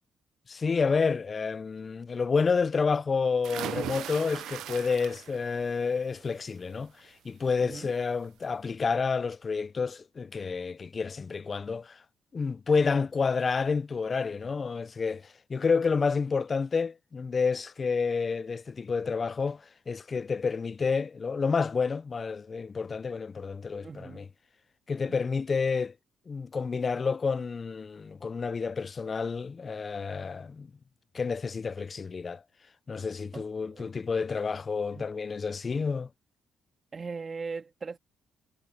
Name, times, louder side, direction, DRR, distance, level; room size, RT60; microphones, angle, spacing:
voice 1, 0.5-6.9 7.2-12.0 12.3-15.2 15.5-19.6 19.9-24.3 24.9-25.9 26.3-30.7 31.1-32.4 32.9-36.1, left 5 dB, 35° left, 0.4 m, -29 dB
sound 1, 3.4-5.5 5.9-6.4 7.7-7.8 8.2-8.3, right 13 dB, 80° right, 0.3 m, -38 dB
voice 2, 7.6-7.9 23.8-24.3 25.1-25.3 33.3-33.9 34.9-35.1 36.9-38.0, right 4 dB, 35° right, 2.1 m, -40 dB
cardioid pair, 90°, 0 cm